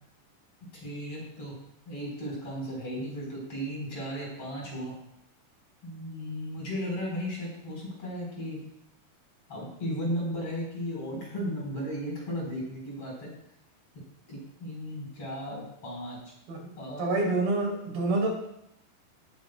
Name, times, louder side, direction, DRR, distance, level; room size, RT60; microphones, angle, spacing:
voice 1, 0.7-1.6 1.9-4.9 5.8-8.6 9.5-13.3 14.3-16.2 16.8-17.3, equal, 40° left, -3 dB, 4.8 m, -35 dB
voice 2, 17.0-18.3, right 2 dB, 75° right, -2 dB, 4.8 m, -27 dB
17.5 x 10.0 x 2.2 m, 0.78 s
omnidirectional pair, 4.2 m